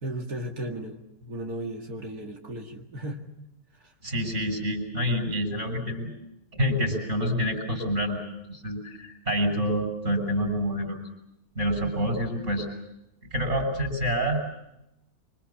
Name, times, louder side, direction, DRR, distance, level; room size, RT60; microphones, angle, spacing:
voice 1, 0.0-3.2 3.8-3.9, right 1 dB, 70° right, 2 dB, 2.7 m, -35 dB
voice 2, 4.0-6.1 6.5-8.2 8.5-11.0 11.6-12.7 13.3-14.4, equal, 45° right, 5 dB, 7.0 m, -27 dB
26.0 x 26.0 x 7.2 m, 0.85 s
omnidirectional pair, 1.7 m